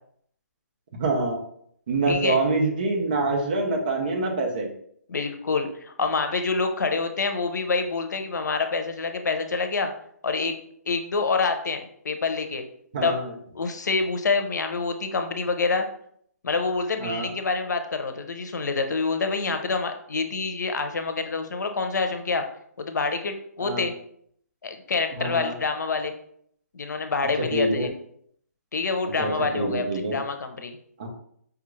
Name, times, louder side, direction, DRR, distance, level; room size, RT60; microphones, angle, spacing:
voice 1, 1.0-1.4 1.9-4.7 12.9-13.3 17.0-17.3 23.6-23.8 25.2-25.5 27.5-27.9 29.2-30.2 31.0-31.1, right 2 dB, 30° right, 2 dB, 0.6 m, -25 dB
voice 2, 2.1-2.4 5.1-9.9 10.2-10.6 10.9-12.6 13.0-13.2 13.5-15.8 16.4-22.4 22.8-23.9 24.6-26.1 26.7-27.9 28.7-30.8, left 4 dB, 85° left, 6 dB, 0.6 m, -27 dB
4.8 x 2.4 x 3.1 m, 0.66 s
hypercardioid pair, 175°, 9 cm